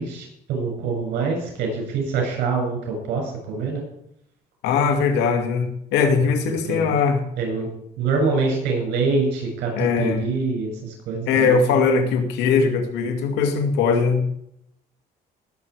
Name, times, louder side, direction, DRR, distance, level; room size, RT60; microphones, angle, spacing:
voice 1, 0.0-3.8 6.2-6.3 6.7-7.0 7.4-7.7 8.0-11.8, right 4 dB, 85° right, 1 dB, 7.0 m, -25 dB
voice 2, 4.6-7.2 9.7-10.2 11.3-14.3, left 5 dB, 85° left, 5 dB, 2.2 m, -20 dB
19.0 x 8.1 x 4.8 m, 0.74 s
cardioid pair, 110°, 17 cm